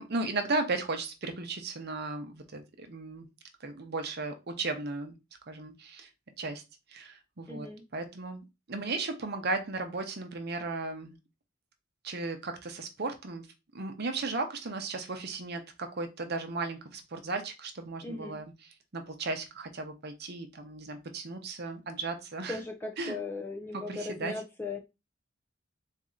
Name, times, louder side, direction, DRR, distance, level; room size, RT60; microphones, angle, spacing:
voice 1, 0.0-3.3 3.6-5.1 5.5-6.1 6.4-6.6 6.9-7.7 7.9-11.2 12.0-13.4 13.7-18.5 18.9-22.6 23.0-23.2 23.7-24.3, right 3 dB, 55° right, 0.8 m, -35 dB
voice 2, 7.5-7.8 18.0-18.4 22.5-24.8, left 3 dB, 10° left, 0.5 m, -38 dB
4.2 x 2.8 x 3.7 m
head